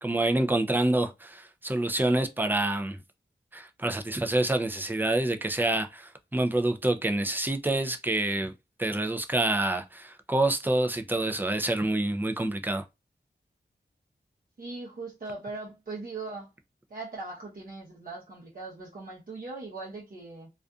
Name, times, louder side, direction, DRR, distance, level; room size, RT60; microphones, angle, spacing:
voice 1, 0.0-3.0 3.5-8.5 8.8-12.8, right 2 dB, 10° right, 0.4 m, -27 dB
voice 2, 14.6-16.5 16.9-20.5, right 3 dB, 55° right, 0.8 m, -40 dB
2.5 x 2.4 x 2.3 m
wide cardioid pair, 70°, 18 cm